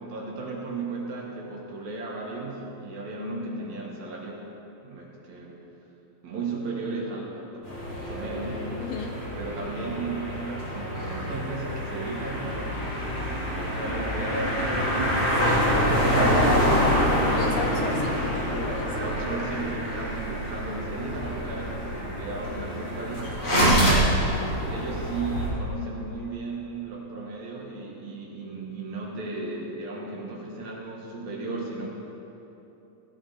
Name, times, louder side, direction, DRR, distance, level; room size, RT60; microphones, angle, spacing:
voice 1, 0.0-4.5 4.8-5.6 6.2-7.6 8.1-8.8 9.4-15.3 15.9-17.8 18.8-23.4 24.0-31.9, right 3 dB, 70° right, -2 dB, 3.1 m, -35 dB
sound 1, 7.6-25.5, equal, 45° left, 3.5 m, -26 dB
voice 2, 8.8-9.2 15.4-15.7 17.3-18.9 23.6-24.1, left 6 dB, 75° left, 3 dB, 1.6 m, -35 dB
16.5 x 11.0 x 4.2 m, 3.0 s
omnidirectional pair, 3.4 m